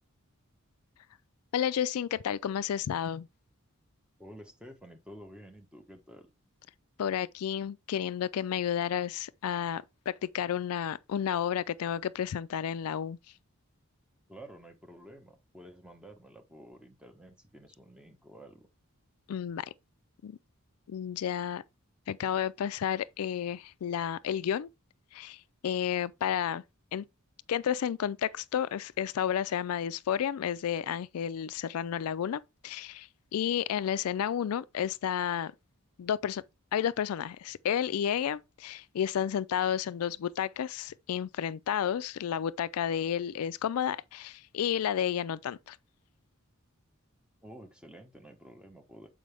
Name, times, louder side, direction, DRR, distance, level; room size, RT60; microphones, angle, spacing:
voice 1, 1.5-3.3 7.0-13.2 19.3-19.7 20.2-20.4 20.9-21.6 22.1-24.7 25.1-26.6 26.9-27.1 27.5-35.5 36.0-36.4 36.7-45.8, left 9 dB, 80° left, 0.3 m, -31 dB
voice 2, 4.2-6.3 14.3-18.7 47.4-49.1, equal, 5° right, 1.1 m, -50 dB
7.6 x 4.9 x 3.4 m
head